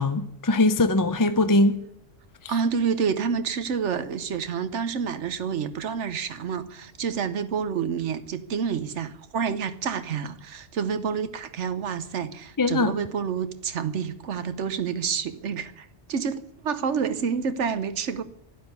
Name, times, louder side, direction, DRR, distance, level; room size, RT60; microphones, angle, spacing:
voice 1, 0.0-1.8 2.4-2.5 12.6-13.0, left 2 dB, 25° left, 10 dB, 0.5 m, -21 dB
voice 2, 2.5-18.2, right 6 dB, 85° right, 12 dB, 1.2 m, -28 dB
12.0 x 11.0 x 9.3 m, 0.78 s
omnidirectional pair, 1.2 m